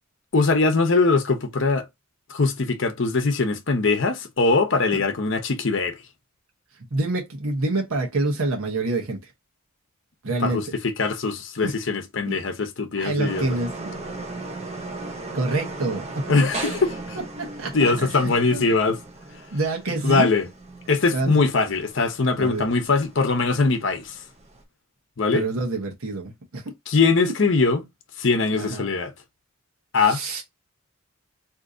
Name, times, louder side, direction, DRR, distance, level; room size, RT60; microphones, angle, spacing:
voice 1, 0.3-1.9 2.3-6.0 10.4-13.4 16.3-17.2 17.7-19.0 20.0-20.5 20.9-24.2 25.2-25.5 26.9-27.8 28.2-29.1 29.9-30.2, left 3 dB, 55° left, 0.7 m, -21 dB
voice 2, 6.9-9.3 10.2-10.6 11.6-11.7 12.3-12.4 13.0-13.7 15.3-16.2 17.4-17.9 18.2-18.7 19.5-20.3 21.1-21.5 22.4-22.7 25.3-26.7 27.2-27.3 28.5-28.9 30.0-30.4, right 2 dB, 75° right, 0.9 m, -27 dB
sound 1, 13.2-24.6, right 2 dB, 30° right, 0.5 m, -37 dB
2.7 x 2.5 x 3.7 m
head